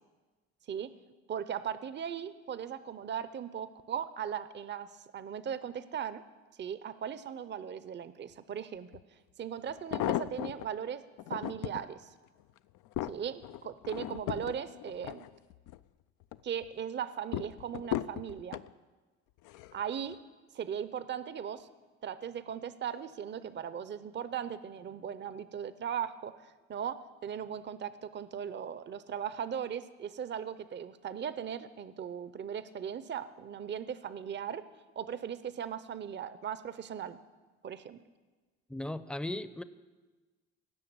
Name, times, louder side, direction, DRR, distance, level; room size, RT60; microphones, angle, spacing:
voice 1, 1.3-6.2 6.6-9.0 9.4-11.0 11.3-12.1 13.1-15.3 16.4-18.6 19.7-20.2 20.5-21.7 22.0-34.6 35.0-37.2 37.6-38.0, right 8 dB, 35° right, 14 dB, 0.6 m, -38 dB
sound 1, 8.9-9.0 9.7-10.7 11.2-11.8 12.4-15.8 16.2-16.7 17.3-18.7 19.4-19.8 20.1-20.2, left 13 dB, 80° left, 0.5 m, -36 dB
voice 2, 38.7-39.6, left 1 dB, 5° left, 13 dB, 0.6 m, -37 dB
17.0 x 6.4 x 8.8 m, 1.3 s
cardioid pair, 90°, 31 cm